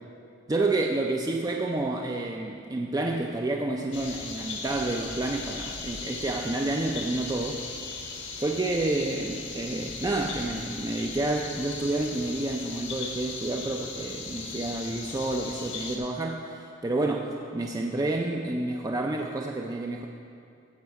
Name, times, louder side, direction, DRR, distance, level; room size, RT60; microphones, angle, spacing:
voice 1, 0.5-7.6 8.4-20.1, right 2 dB, 20° right, 1 dB, 0.4 m, -29 dB
sound 1, 3.9-16.0, left 4 dB, 80° left, 1.4 m, -38 dB
15.0 x 5.4 x 4.7 m, 2.5 s
head